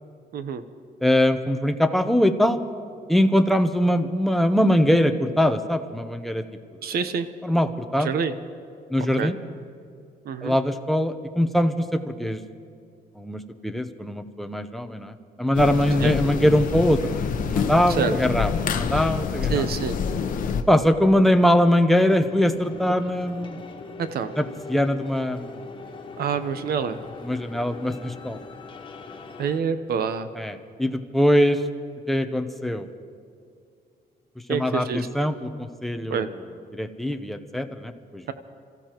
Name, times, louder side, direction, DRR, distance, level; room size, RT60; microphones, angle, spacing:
voice 1, 0.3-0.6 6.8-7.3 8.0-8.3 9.2-9.3 10.2-10.6 16.0-16.1 18.0-18.1 19.5-20.0 24.0-24.3 26.2-27.0 29.4-30.3 34.5-35.1 36.1-36.3, right 6 dB, 70° right, 10 dB, 0.9 m, -26 dB
voice 2, 1.0-2.6 3.1-6.4 6.8-6.9 7.4-8.1 8.9-9.4 10.4-12.4 13.2-19.6 20.7-23.6 24.4-25.7 27.2-28.4 30.4-31.6 32.1-32.9 34.5-36.3 36.7-38.3, equal, ahead, 6 dB, 0.7 m, -22 dB
sound 1, 15.5-20.6, left 6 dB, 55° left, 0.9 m, -27 dB
sound 2, 22.1-29.6, left 4 dB, 30° left, 1.1 m, -41 dB
30.0 x 14.5 x 3.0 m, 2.3 s
wide cardioid pair, 160°, 17 cm